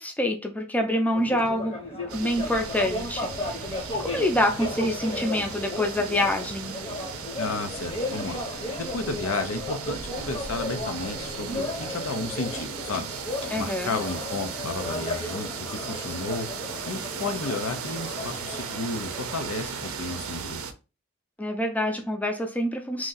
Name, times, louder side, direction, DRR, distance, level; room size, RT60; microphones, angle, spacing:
voice 1, 0.0-1.8 2.1-3.7 4.0-6.8 13.5-14.0 21.4-23.1, left 1 dB, 5° left, 0.5 m, -26 dB
sound 1, 1.1-19.6, left 2 dB, 25° left, 0.9 m, -35 dB
sound 2, 2.1-20.7, right 6 dB, 80° right, 0.5 m, -37 dB
voice 2, 7.4-13.1 13.6-20.6, left 3 dB, 80° left, 0.7 m, -33 dB
3.0 x 2.6 x 3.9 m
head